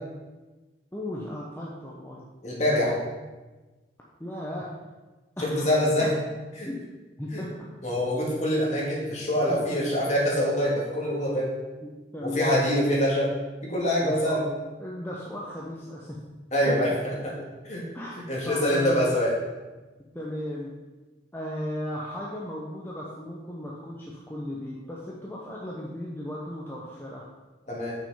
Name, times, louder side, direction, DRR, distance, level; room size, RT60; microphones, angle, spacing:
voice 1, 0.9-2.2 4.2-4.7 5.4-5.7 6.0-6.1 6.6-6.8 7.2-7.7 9.5-9.8 11.8-13.0 14.0-14.4 14.8-16.2 16.7-16.8 17.9-19.2 20.1-20.7 21.3-27.3, left 1 dB, 10° left, -5 dB, 0.8 m, -36 dB
voice 2, 2.4-3.0 5.4-6.1 6.6-6.7 7.3-7.4 7.8-11.5 12.2-13.3 13.6-14.4 16.5-17.3 17.6-17.8 18.3-19.3 27.7-27.9, equal, 35° left, -4 dB, 2.2 m, -25 dB
6.7 x 6.3 x 5.0 m, 1.2 s
head